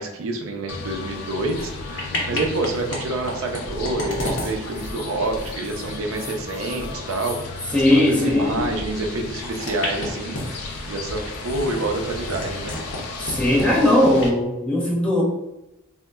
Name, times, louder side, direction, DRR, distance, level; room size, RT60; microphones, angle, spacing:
voice 1, 0.0-7.4 7.7-12.7, right 2 dB, 65° right, 3 dB, 0.5 m, -28 dB
sound 1, 0.7-14.3, left 3 dB, 85° left, 0.5 m, -34 dB
sound 2, 1.5-1.7 2.0-3.0 3.3-8.2 8.5-8.6 9.5-10.8 11.3-13.0 13.2-13.7 14.2-14.3, left 1 dB, 55° left, 0.7 m, -32 dB
voice 2, 7.7-8.7 13.2-15.2, left 1 dB, 5° left, -6 dB, 0.7 m, -19 dB
3.7 x 2.1 x 2.2 m, 0.92 s
head